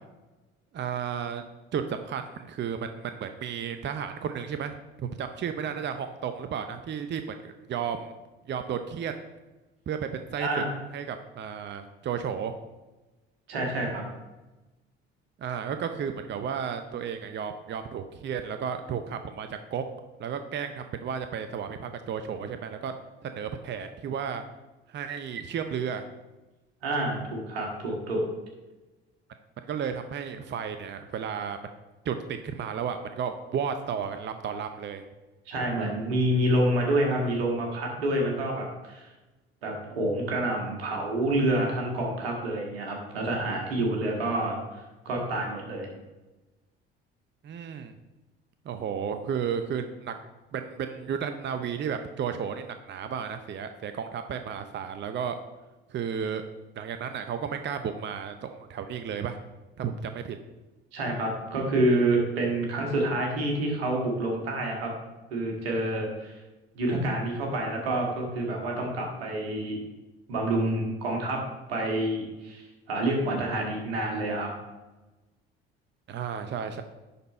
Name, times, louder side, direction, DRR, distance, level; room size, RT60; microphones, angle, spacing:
voice 1, 0.7-1.4 1.7-8.1 8.5-9.2 9.9-10.6 10.9-12.5 15.4-19.8 20.2-22.9 23.2-24.4 24.9-26.0 29.6-31.6 32.0-35.0 47.4-47.9 48.7-50.1 50.5-55.4 55.9-56.4 56.8-59.4 59.8-60.4 76.1-76.8, right 7 dB, 35° right, 8 dB, 0.7 m, -33 dB
voice 2, 13.5-14.0 26.8-28.2 35.5-39.1 39.6-45.9 60.9-64.9 65.3-66.4 66.7-69.8 70.3-71.4 71.7-74.5, right 1 dB, 80° right, 0 dB, 1.8 m, -28 dB
10.5 x 4.2 x 4.3 m, 1.1 s
hypercardioid pair, 55°, 30 cm